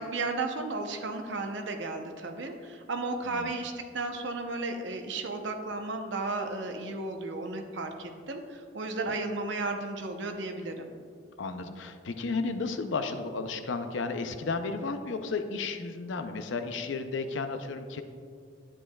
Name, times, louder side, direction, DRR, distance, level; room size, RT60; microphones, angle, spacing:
voice 1, 0.0-10.9, right 3 dB, 65° right, 5 dB, 0.7 m, -34 dB
voice 2, 11.4-18.0, left 4 dB, 70° left, 8 dB, 0.5 m, -33 dB
9.9 x 8.5 x 2.3 m, 2.2 s
head